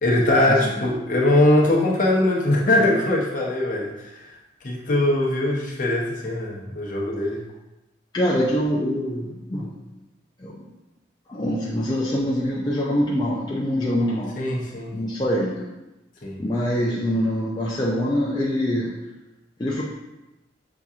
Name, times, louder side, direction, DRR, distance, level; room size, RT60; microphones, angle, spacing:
voice 1, 0.0-3.9 4.2-4.3 4.6-7.4 14.4-14.9 16.2-16.4, left 1 dB, 40° left, -3 dB, 0.7 m, -21 dB
voice 2, 8.1-9.7 10.4-10.6 11.3-14.3 14.9-15.6 16.4-18.9 19.6-19.8, equal, 20° left, -6 dB, 0.4 m, -24 dB
6.0 x 2.7 x 2.4 m, 1.0 s
head